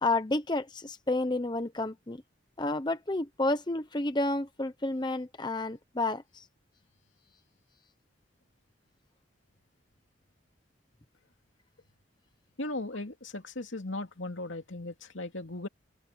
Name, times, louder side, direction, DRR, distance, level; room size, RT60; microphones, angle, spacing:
voice 1, 0.0-2.2 2.6-6.4, left 2 dB, 20° left, 0.9 m, -30 dB
voice 2, 12.6-15.7, left 2 dB, 80° left, 2.6 m, -37 dB
head